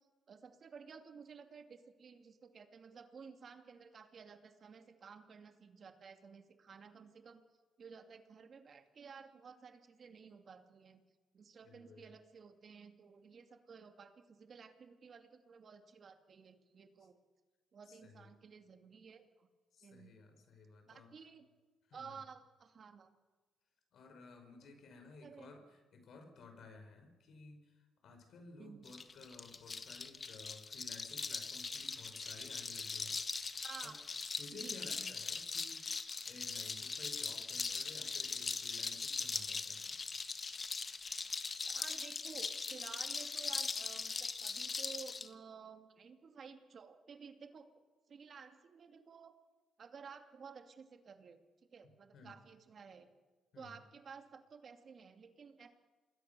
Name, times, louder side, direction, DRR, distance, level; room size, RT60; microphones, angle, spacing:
voice 1, 0.3-7.4 7.8-11.0 11.3-17.2 17.7-19.5 19.8-20.2 20.9-21.5 21.9-23.1 24.6-24.8 25.2-25.5 28.6-28.9 33.6-34.0 34.5-35.2 41.6-49.4 49.8-51.4 51.7-53.1 53.6-55.7, right 6 dB, 50° right, 7 dB, 2.5 m, -54 dB
voice 2, 11.6-12.1 17.9-18.3 19.7-21.1 21.9-22.2 23.9-33.5 33.8-33.9 34.4-40.0 52.1-52.3 53.5-53.7, left 3 dB, 65° left, 6 dB, 5.5 m, -56 dB
sound 1, 28.9-45.3, left 4 dB, 35° left, 1.6 m, -41 dB
27.5 x 20.5 x 7.0 m, 1.3 s
cardioid pair, 90°, 0 cm